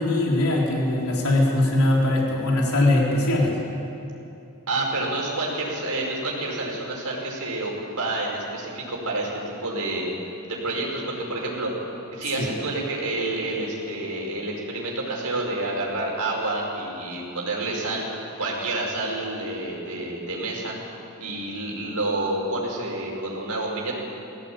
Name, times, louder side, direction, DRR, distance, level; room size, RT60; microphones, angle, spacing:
voice 1, 0.0-3.5 12.4-12.5, left 1 dB, 80° left, -2 dB, 3.7 m, -21 dB
voice 2, 4.7-11.7 12.1-18.0 18.4-20.7 21.2-24.0, right 2 dB, 90° right, -2 dB, 5.1 m, -29 dB
19.0 x 16.5 x 8.8 m, 2.8 s
head